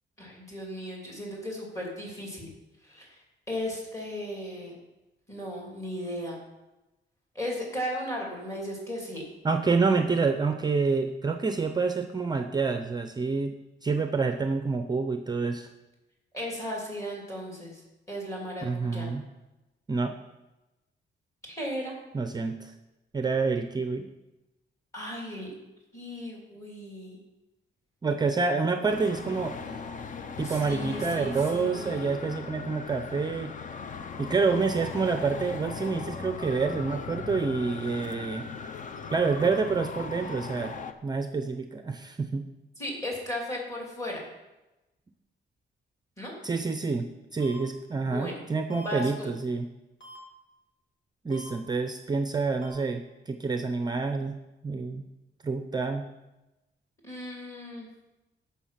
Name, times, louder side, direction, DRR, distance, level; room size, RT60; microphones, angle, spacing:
voice 1, 0.2-2.5 2.8-3.2 3.5-4.7 5.3-6.4 7.3-9.3 16.3-17.8 18.1-19.1 21.5-21.9 24.9-25.5 25.9-27.2 30.4-32.1 42.8-44.2 46.2-46.3 47.9-48.4 48.7-49.3 57.0-57.9, left 1 dB, 15° left, -2 dB, 3.0 m, -36 dB
voice 2, 9.4-13.5 13.8-15.7 18.6-19.2 19.9-20.1 22.1-22.7 23.1-24.1 28.0-29.6 30.4-33.5 34.2-38.5 39.1-40.7 41.0-42.4 46.4-49.7 51.2-54.4 54.6-55.0 55.4-56.0, right 4 dB, 20° right, 7 dB, 0.5 m, -28 dB
Traffic noise roadway noise, 28.9-40.9, left 5 dB, 40° left, 0.6 m, -39 dB
sound 1, 47.4-47.5 48.7-48.8 50.0-50.2 51.3-51.5 52.6-52.7, right 1 dB, 75° left, 3.7 m, -47 dB
13.5 x 5.8 x 5.8 m, 1.0 s
wide cardioid pair, 175°, 19 cm